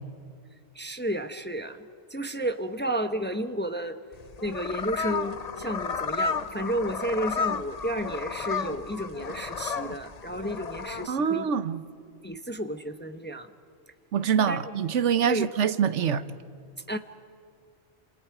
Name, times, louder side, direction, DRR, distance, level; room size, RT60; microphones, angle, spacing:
voice 1, 0.7-4.0 4.4-11.5 12.2-13.5 14.5-14.7 15.3-15.5 16.9-17.0, right 1 dB, 10° left, 0.7 m, -32 dB
sound 1, 4.1-11.1, left 5 dB, 40° left, 0.7 m, -32 dB
voice 2, 11.1-11.8 14.1-16.2, right 7 dB, 80° right, 1.2 m, -25 dB
29.0 x 28.0 x 4.8 m
omnidirectional pair, 1.2 m